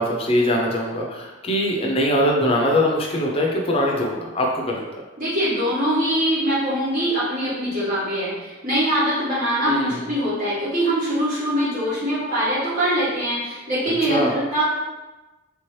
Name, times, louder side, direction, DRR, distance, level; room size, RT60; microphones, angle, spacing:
voice 1, 0.0-4.8 9.7-10.1 14.1-14.3, equal, 30° left, -1 dB, 0.6 m, -22 dB
voice 2, 5.2-14.6, right 1 dB, 45° right, -9 dB, 1.3 m, -23 dB
3.4 x 3.0 x 3.1 m, 1.1 s
head